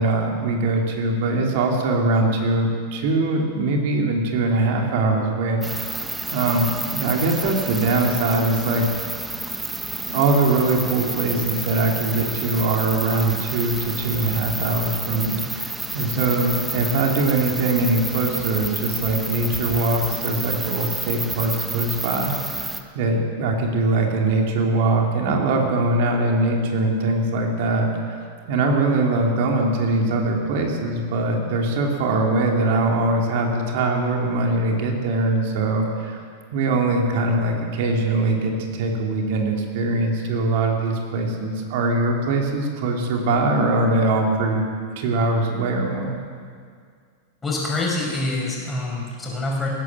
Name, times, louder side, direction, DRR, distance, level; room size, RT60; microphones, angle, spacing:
voice 1, 0.0-6.0 6.3-8.8 10.1-22.6 22.9-28.2 28.5-36.2 36.5-44.6 45.0-46.1, right 2 dB, 60° right, 1 dB, 2.9 m, -22 dB
sound 1, 5.6-22.8, right 2 dB, 10° right, 1.0 m, -30 dB
voice 2, 47.4-49.7, left 2 dB, 15° left, -2 dB, 5.3 m, -26 dB
18.5 x 9.1 x 7.6 m, 2.1 s
hypercardioid pair, 115°, 0 cm